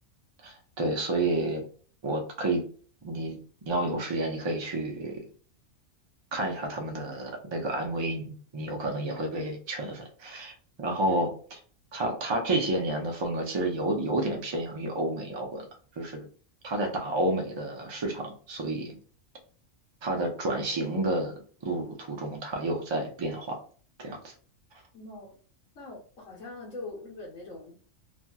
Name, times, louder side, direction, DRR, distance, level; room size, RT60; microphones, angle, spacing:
voice 1, 0.4-1.6 2.0-2.7 3.0-3.4 3.7-5.2 6.3-11.3 11.9-15.7 16.0-16.3 16.6-19.0 20.0-23.6 24.0-24.3, right 2 dB, 35° right, 2 dB, 0.5 m, -30 dB
voice 2, 24.9-25.3 25.8-27.8, left 3 dB, 90° left, -4 dB, 1.2 m, -42 dB
2.9 x 2.4 x 2.2 m, 0.42 s
omnidirectional pair, 1.3 m